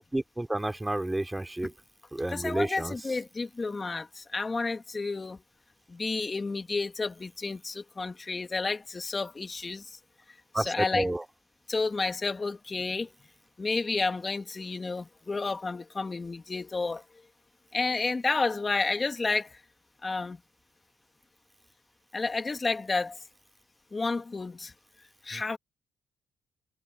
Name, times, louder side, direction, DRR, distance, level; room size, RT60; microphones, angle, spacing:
voice 1, 0.1-1.7 2.1-2.9 10.5-11.2 25.3-25.4, right 1 dB, 10° right, 2.8 m, -30 dB
voice 2, 2.3-5.4 5.9-10.0 10.6-11.1 11.7-13.1 13.6-17.0 17.7-19.6 20.0-20.4 22.1-23.2 23.9-24.7 25.2-25.6, left 3 dB, 25° left, 2.0 m, -31 dB
cardioid pair, 90°, 0 cm